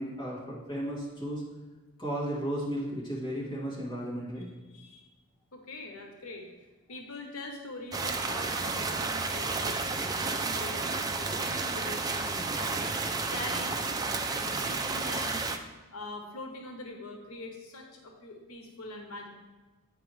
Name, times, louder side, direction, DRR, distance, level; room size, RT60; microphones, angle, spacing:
voice 1, 0.0-1.4 2.0-4.5, equal, 20° left, -7 dB, 2.1 m, -34 dB
voice 2, 4.4-5.0 5.5-6.5 6.9-15.5 15.9-19.3, left 2 dB, 90° left, 2 dB, 0.9 m, -43 dB
sound 1, 7.9-15.6, right 3 dB, 20° right, 0.3 m, -31 dB
8.9 x 4.9 x 3.1 m, 1.2 s
head